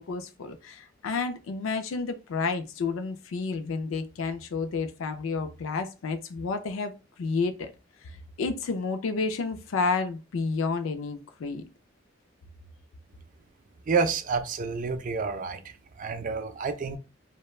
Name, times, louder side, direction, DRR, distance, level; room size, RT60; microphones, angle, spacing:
voice 1, 0.0-6.9 7.2-7.7 8.0-11.6, left 4 dB, 85° left, 0.4 m, -30 dB
voice 2, 13.9-17.0, right 5 dB, 40° right, 0.3 m, -29 dB
3.1 x 2.1 x 2.3 m
head